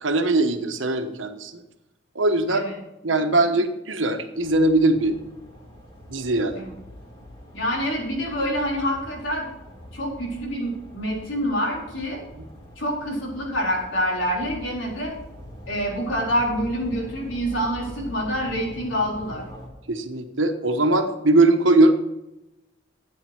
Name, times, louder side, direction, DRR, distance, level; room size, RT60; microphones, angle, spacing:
voice 1, 0.0-1.6 2.1-2.6 3.0-5.2 6.1-6.6 19.9-21.9, right 2 dB, 90° right, 7 dB, 1.3 m, -20 dB
sound 1, 4.4-19.7, left 1 dB, 25° left, 3.2 m, -43 dB
voice 2, 7.5-9.5 9.9-12.2 12.8-15.1 15.7-19.4, equal, 85° left, -2 dB, 4.2 m, -26 dB
13.0 x 9.2 x 4.5 m, 0.94 s
head